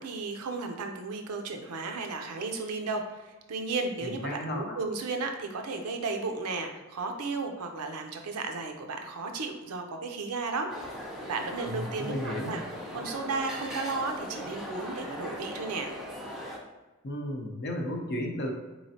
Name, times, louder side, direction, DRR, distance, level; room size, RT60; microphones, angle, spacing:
voice 1, 0.0-10.7 11.3-12.6 12.9-15.9, right 3 dB, 85° right, 4 dB, 0.5 m, -34 dB
voice 2, 4.0-4.8 11.7-12.6 17.0-18.5, left 1 dB, 45° left, 2 dB, 0.6 m, -34 dB
sound 1, 10.7-16.6, equal, ahead, 0.5 m, -39 dB
4.1 x 3.1 x 2.7 m, 1.2 s
head